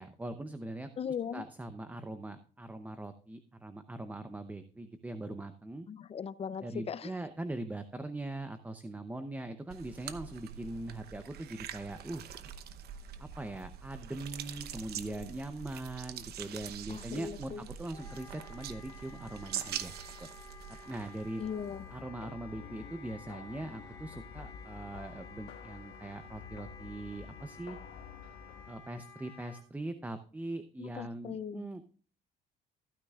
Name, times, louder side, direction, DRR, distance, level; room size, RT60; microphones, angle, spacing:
voice 1, 0.0-0.9 1.3-5.9 6.6-12.2 13.2-20.3 20.9-21.4 21.9-27.8 28.7-31.8, right 2 dB, 10° right, 0.7 m, -41 dB
voice 2, 1.0-1.4 5.9-7.1 16.9-17.7 21.4-21.9 30.8-31.7, left 7 dB, 35° left, 0.6 m, -39 dB
sound 1, 9.7-21.9, right 9 dB, 70° right, 0.9 m, -44 dB
Wind instrument woodwind instrument, 17.9-29.6, left 4 dB, 20° left, 3.2 m, -53 dB
sound 2, 21.4-28.7, left 7 dB, 85° left, 1.4 m, -50 dB
15.0 x 9.7 x 2.4 m
cardioid pair, 110°, 17 cm